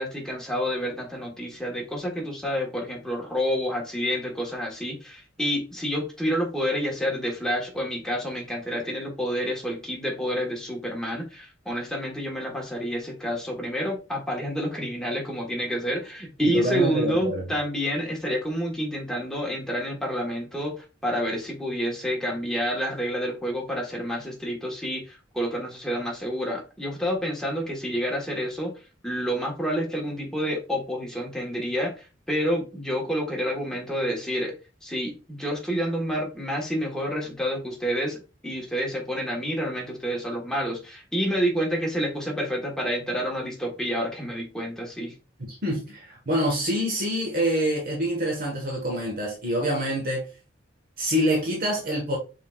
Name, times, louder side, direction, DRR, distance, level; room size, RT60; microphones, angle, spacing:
voice 1, 0.0-34.5 34.8-45.1, equal, 5° left, 1.3 m, -29 dB
voice 2, 16.4-17.4 45.6-50.3 51.0-52.2, equal, 50° right, 1.3 m, -26 dB
5.5 x 3.9 x 2.4 m
head